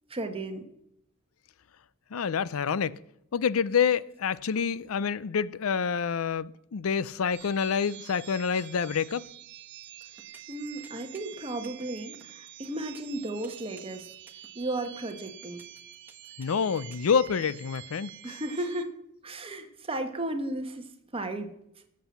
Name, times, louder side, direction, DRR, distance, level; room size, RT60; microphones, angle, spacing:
voice 1, 0.1-0.7 10.5-14.1 14.5-15.6 18.2-18.9 19.2-20.8 21.1-21.5, right 1 dB, 25° right, 1.4 m, -34 dB
voice 2, 2.1-3.0 3.3-9.2 16.4-18.1, left 6 dB, 80° left, 0.5 m, -27 dB
sound 1, 7.3-18.8, right 13 dB, 55° right, 0.9 m, -48 dB
sound 2, 10.0-17.8, right 2 dB, 10° right, 1.2 m, -54 dB
17.0 x 7.6 x 7.2 m
head